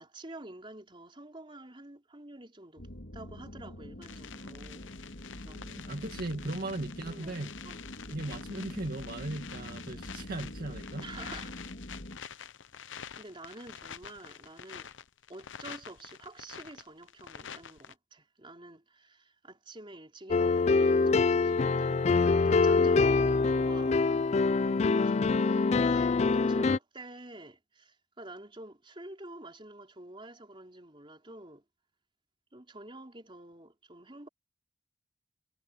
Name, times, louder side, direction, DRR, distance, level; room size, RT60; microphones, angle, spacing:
voice 1, 0.0-2.9 3.1-4.9 5.3-5.6 7.1-7.8 11.0-11.6 13.2-14.9 15.3-24.0 24.6-31.6 32.5-34.3, right 2 dB, 25° right, 4.5 m, -49 dB
sound 1, 2.8-12.2, left 1 dB, 60° left, 2.1 m, -45 dB
sound 2, 4.0-17.9, left 8 dB, 75° left, 0.8 m, -47 dB
voice 2, 5.5-7.5 8.1-11.1 24.7-25.5, right 2 dB, 50° right, 2.0 m, -38 dB
sound 3, 20.3-26.8, left 4 dB, 35° left, 0.4 m, -25 dB
head